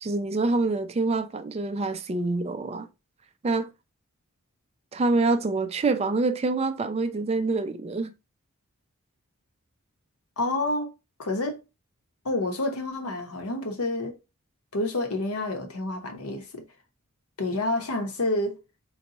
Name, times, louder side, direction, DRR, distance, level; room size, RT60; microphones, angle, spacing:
voice 1, 0.0-2.9 3.4-3.7 4.9-8.1, right 3 dB, 30° right, 0.4 m, -26 dB
voice 2, 10.4-10.9 11.2-11.6 12.2-14.2 14.7-16.6 17.4-18.6, left 2 dB, 85° left, 1.0 m, -28 dB
4.1 x 2.2 x 3.9 m
head